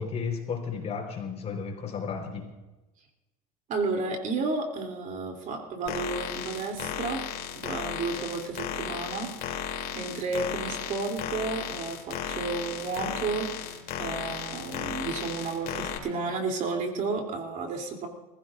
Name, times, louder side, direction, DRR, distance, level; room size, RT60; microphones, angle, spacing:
voice 1, 0.0-2.5, left 5 dB, 35° left, 2 dB, 4.2 m, -33 dB
voice 2, 3.7-7.2 7.6-9.6 9.9-13.5 14.0-18.1, right 4 dB, 45° right, 3 dB, 3.0 m, -32 dB
sound 1, 5.9-16.0, left 8 dB, 55° left, 3.1 m, -35 dB
25.5 x 15.5 x 2.6 m, 1.1 s
supercardioid pair, 105°, 18 cm